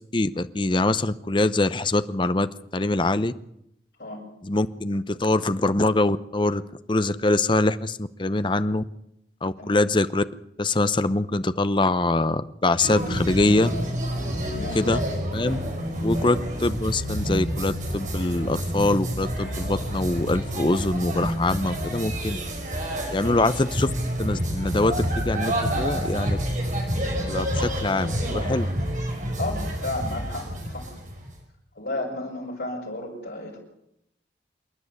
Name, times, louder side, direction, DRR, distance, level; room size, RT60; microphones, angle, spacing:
voice 1, 0.1-3.3 4.4-6.6 6.9-8.8 9.4-10.2 10.6-13.7 14.7-15.0 15.3-15.6 16.0-22.4 23.1-23.9 24.2-26.4 27.3-28.7, left 2 dB, 25° left, 13 dB, 0.7 m, -24 dB
voice 2, 9.6-9.9 14.4-14.8 16.1-16.3 23.2-23.5 29.4-30.9 31.7-33.6, left 2 dB, 65° left, -8 dB, 6.7 m, -33 dB
sound 1, 12.8-31.3, equal, 45° right, 5.2 m, -28 dB
27.0 x 10.5 x 9.6 m, 0.78 s
head